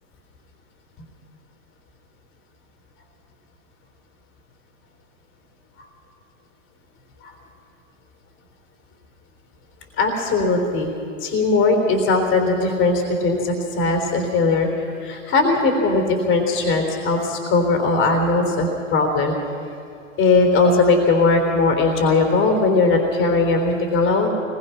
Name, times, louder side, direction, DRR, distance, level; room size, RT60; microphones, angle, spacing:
voice 1, 10.0-10.9 11.2-14.7 15.0-19.3 20.2-24.3, left 3 dB, 30° left, 3 dB, 3.7 m, -19 dB
24.5 x 21.0 x 5.8 m, 2.5 s
hypercardioid pair, 115°, 40 cm